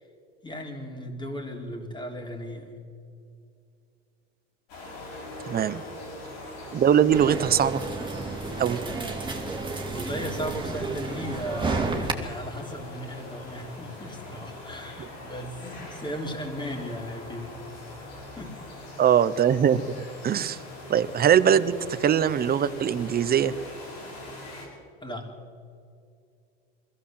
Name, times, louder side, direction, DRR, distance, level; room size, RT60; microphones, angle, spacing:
voice 1, 0.4-2.7 8.8-9.1 9.9-15.6 15.9-17.5 18.0-18.5 25.0-25.3, equal, 15° left, 3 dB, 3.7 m, -36 dB
sound 1, 4.7-24.7, left 2 dB, 80° left, 7.2 m, -42 dB
voice 2, 5.5-5.8 6.7-7.9 8.6-8.8 15.0-15.1 19.0-20.6 20.9-23.5, right 9 dB, 30° right, 15 dB, 0.9 m, -22 dB
sound 2, 7.1-12.1, right 3 dB, 15° right, 2.6 m, -31 dB
21.5 x 15.5 x 7.8 m, 2.4 s
hypercardioid pair, 90°, 30 cm